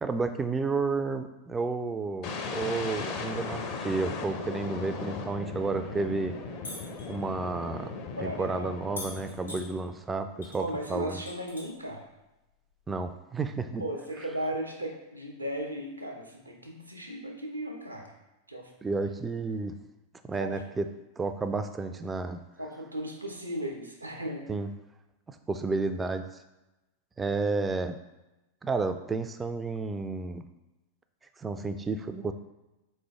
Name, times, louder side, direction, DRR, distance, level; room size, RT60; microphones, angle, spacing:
voice 1, 0.0-6.4 7.1-7.9 8.2-11.2 12.9-13.8 18.8-19.7 20.2-20.9 21.2-22.4 24.5-24.7 25.3-26.3 27.2-28.0 28.6-30.4 31.4-32.3, right 3 dB, 15° right, 9 dB, 0.3 m, -31 dB
sound 1, 2.2-10.1, left 4 dB, 40° left, 0.5 m, -38 dB
sound 2, 6.6-7.1 9.0-9.6 10.4-10.6 10.9-11.9 13.1-13.2, left 2 dB, 85° left, 1.4 m, -41 dB
voice 2, 8.2-8.8 10.6-12.1 13.8-18.1 18.5-18.7 20.4-20.6 22.6-24.5, right 1 dB, 85° right, 2 dB, 0.6 m, -36 dB
3.8 x 3.2 x 3.5 m, 0.99 s
figure-of-eight pair, 90°, 0 cm